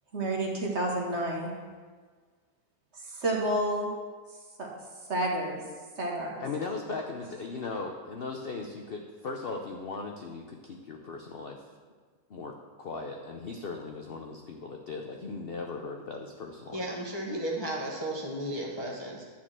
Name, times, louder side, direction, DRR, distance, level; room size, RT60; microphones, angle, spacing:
voice 1, 0.1-1.5 2.9-3.9 4.6-4.7 5.1-5.6 6.0-6.4, right 1 dB, 45° right, -1 dB, 1.6 m, -30 dB
voice 2, 6.4-11.6 12.3-16.9, left 3 dB, 55° left, 2 dB, 0.6 m, -38 dB
voice 3, 16.7-19.2, right 1 dB, 20° left, -2 dB, 0.7 m, -34 dB
10.5 x 4.3 x 7.4 m, 1.5 s
omnidirectional pair, 1.8 m